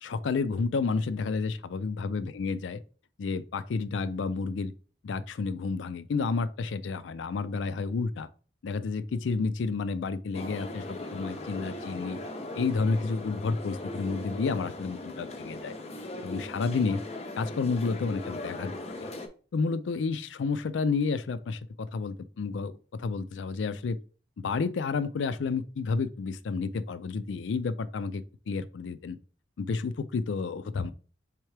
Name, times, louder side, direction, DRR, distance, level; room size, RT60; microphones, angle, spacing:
voice 1, 0.0-2.8 3.2-4.7 5.0-8.3 8.6-10.8 11.1-12.2 12.6-15.7 16.2-17.0 17.4-18.7 19.0-19.1 19.5-24.0 24.4-29.2 29.6-30.9, left 4 dB, 85° left, 0.4 m, -30 dB
sound 1, 10.3-19.3, left 2 dB, 35° left, 0.5 m, -39 dB
4.5 x 3.6 x 3.2 m
head